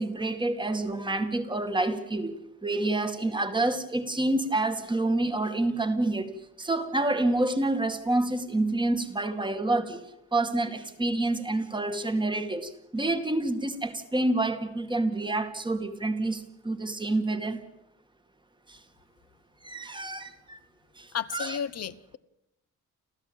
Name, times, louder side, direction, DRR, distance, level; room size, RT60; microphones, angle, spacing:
voice 1, 0.0-10.0 10.3-17.6 18.7-18.8 19.6-20.6 21.0-21.6, right 2 dB, 15° right, 8 dB, 2.1 m, -28 dB
voice 2, 21.1-22.2, left 8 dB, 60° left, 15 dB, 1.0 m, -33 dB
29.5 x 14.0 x 8.9 m, 0.86 s
wide cardioid pair, 145°, 29 cm